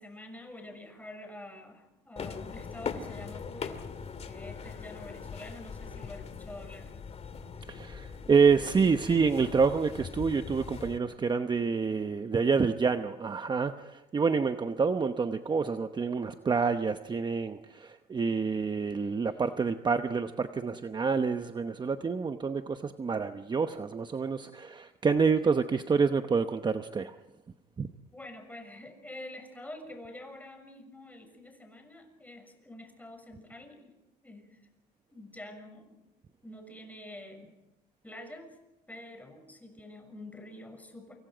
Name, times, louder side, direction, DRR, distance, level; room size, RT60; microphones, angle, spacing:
voice 1, 0.0-3.8 4.2-6.9 28.1-33.9 34.2-34.7 35.1-36.0 36.4-37.5 38.0-38.5 38.9-41.1, left 1 dB, 10° left, 6.6 m, -47 dB
sound 1, 2.2-11.0, left 6 dB, 40° left, 2.3 m, -41 dB
voice 2, 7.7-27.2 27.8-27.9, right 5 dB, 25° right, 0.9 m, -28 dB
28.5 x 27.0 x 5.1 m
cardioid pair, 110°, 17 cm